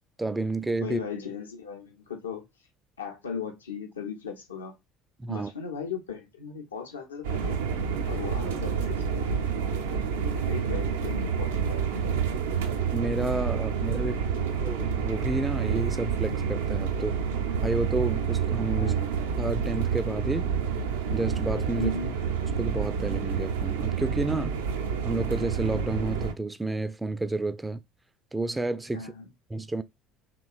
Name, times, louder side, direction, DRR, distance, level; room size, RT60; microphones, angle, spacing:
voice 1, 0.2-1.0 5.2-5.5 12.9-14.2 14.5-17.2 17.6-19.0 19.4-20.5 21.1-21.9 22.6-24.6 25.0-27.8 28.3-29.1 29.5-29.8, right 2 dB, 15° right, 0.3 m, -30 dB
voice 2, 0.8-2.4 3.0-4.7 5.3-7.6 8.1-9.5 10.2-12.2 14.0-14.6 18.7-19.1 21.8-22.1 28.9-29.3, left 6 dB, 80° left, 0.6 m, -37 dB
sound 1, 7.2-26.3, right 7 dB, 75° right, 0.4 m, -28 dB
3.8 x 2.9 x 2.4 m
figure-of-eight pair, 60°, 0 cm